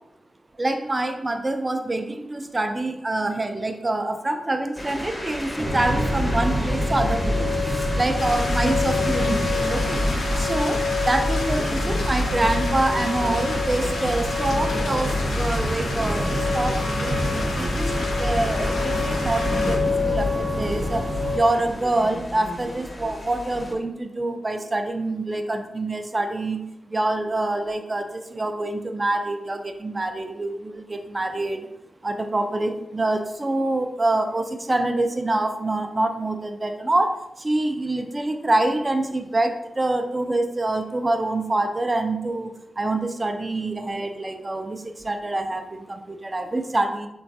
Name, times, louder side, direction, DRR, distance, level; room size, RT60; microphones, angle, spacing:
voice 1, 0.6-7.6 7.9-10.1 10.4-21.0 21.3-31.7 32.0-47.1, right 2 dB, 35° right, 6 dB, 0.4 m, -26 dB
sound 1, 4.8-23.7, left 1 dB, 30° left, 0.7 m, -34 dB
sound 2, 5.6-21.4, left 2 dB, 60° right, 0.7 m, -25 dB
sound 3, 8.2-19.8, left 2 dB, 85° left, 0.4 m, -32 dB
3.1 x 2.2 x 2.6 m, 0.86 s
cardioid pair, 45°, 0 cm